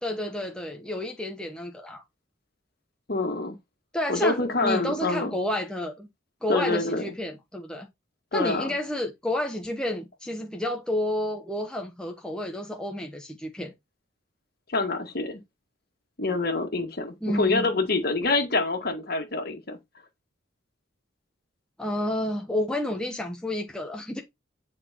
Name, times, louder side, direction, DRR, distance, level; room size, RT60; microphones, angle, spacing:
voice 1, 0.0-2.0 3.9-6.1 6.4-7.9 8.3-13.7 17.2-17.7 21.8-24.2, left 1 dB, 5° left, 0.9 m, -30 dB
voice 2, 3.1-3.5 4.1-5.3 6.5-7.1 8.3-8.7 14.7-15.4 16.2-19.8, left 3 dB, 50° left, 1.7 m, -26 dB
9.6 x 4.5 x 2.9 m
head